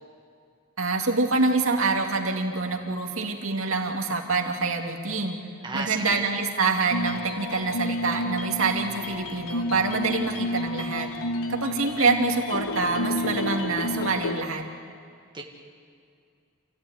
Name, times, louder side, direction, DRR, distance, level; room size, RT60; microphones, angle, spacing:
voice 1, 0.8-5.4 5.7-11.1 11.5-14.6, right 3 dB, 65° right, 2 dB, 2.6 m, -26 dB
voice 2, 5.6-6.2 15.3-15.4, right 3 dB, 20° right, 0 dB, 1.6 m, -33 dB
sound 1, 6.9-14.4, left 1 dB, 80° left, 1.4 m, -30 dB
27.5 x 16.0 x 9.6 m, 2.3 s
head